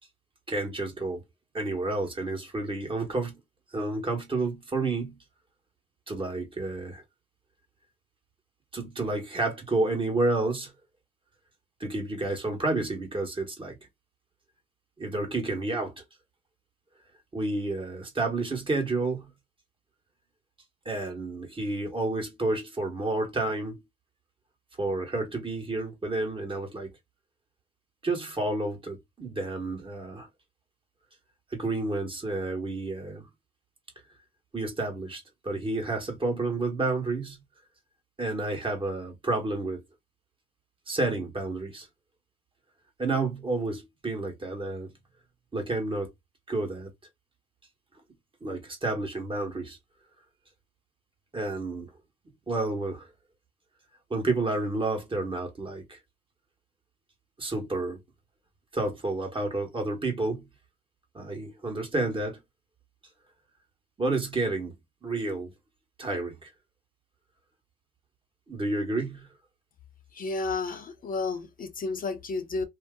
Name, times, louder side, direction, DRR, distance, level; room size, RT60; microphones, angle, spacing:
voice 1, 0.5-1.2 1.5-3.4 3.7-5.2 6.1-7.0 8.7-10.7 11.8-13.8 15.0-16.0 17.3-19.3 20.8-23.7 24.8-26.9 28.0-30.3 31.5-33.2 34.5-37.4 38.2-39.8 40.9-41.9 43.0-44.9 45.5-46.1 46.5-46.9 48.4-49.8 51.3-51.9 52.5-53.1 54.1-56.0 57.4-58.0 58.7-60.5 61.1-62.4 64.0-64.7 65.0-65.5 66.0-66.5 68.5-69.3, right 2 dB, 25° right, 1.3 m, -30 dB
voice 2, 70.1-72.6, left 3 dB, 45° left, 0.7 m, -32 dB
2.7 x 2.1 x 3.6 m
cardioid pair, 90°, 20 cm